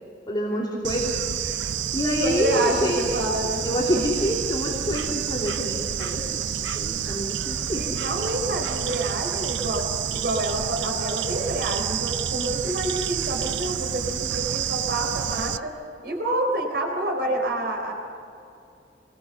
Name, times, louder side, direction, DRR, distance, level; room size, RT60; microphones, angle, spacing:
voice 1, 0.3-1.1 1.9-3.0 3.6-6.5 6.7-7.9, equal, 25° left, -3 dB, 2.9 m, -27 dB
Bird / Insect, 0.8-15.6, right 9 dB, 90° right, 0.6 m, -29 dB
voice 2, 2.2-3.7 7.8-9.9 10.1-15.7 16.0-17.9, right 1 dB, 60° right, 2 dB, 3.9 m, -28 dB
26.5 x 21.0 x 7.0 m, 2.6 s
head